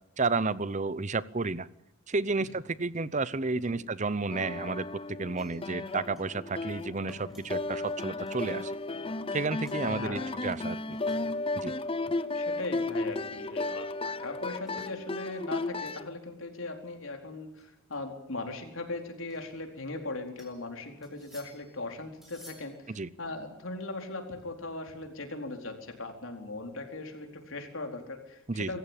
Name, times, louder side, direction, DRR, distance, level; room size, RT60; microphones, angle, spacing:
voice 1, 0.2-1.7 2.1-8.7 9.3-11.0 11.6-11.7 22.9-23.1 28.5-28.7, right 3 dB, 35° right, 18 dB, 0.8 m, -31 dB
voice 2, 3.5-3.9 9.8-10.3 12.3-28.8, left 2 dB, 70° left, 4 dB, 4.3 m, -39 dB
sound 1, 4.3-16.1, left 2 dB, 25° left, 0.7 m, -34 dB
sound 2, 5.4-5.9 6.2-6.4 6.7-9.1 9.4-9.9 10.5-11.5 11.8-12.1 12.5-13.4 14.3-15.0 15.4-16.0 16.4-16.5 16.8-16.9 17.6-18.0 18.9-20.0 20.4-20.7 21.0-21.8 22.2-22.8, equal, ahead, 6.7 m, -56 dB
25.0 x 15.5 x 8.9 m, 0.91 s
head